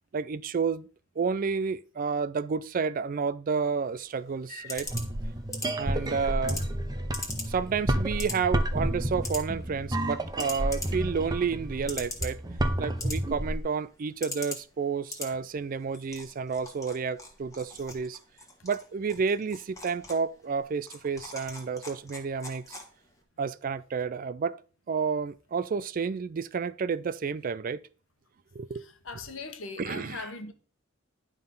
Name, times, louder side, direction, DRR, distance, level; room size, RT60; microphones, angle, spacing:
voice 1, 0.1-0.9 1.2-4.9 5.8-6.6 7.5-12.4 12.8-18.2 18.6-22.8 23.4-24.6 24.9-27.8 28.5-28.8 29.8-30.3, right 5 dB, 45° right, 0.4 m, -30 dB
sound 1, 3.9-23.2, left 3 dB, 15° left, 1.6 m, -43 dB
voice 2, 4.5-4.9 29.0-30.5, left 3 dB, 75° left, 1.2 m, -40 dB
sound 2, 4.8-13.6, right 1 dB, 20° right, 0.8 m, -30 dB
11.0 x 3.8 x 5.4 m
head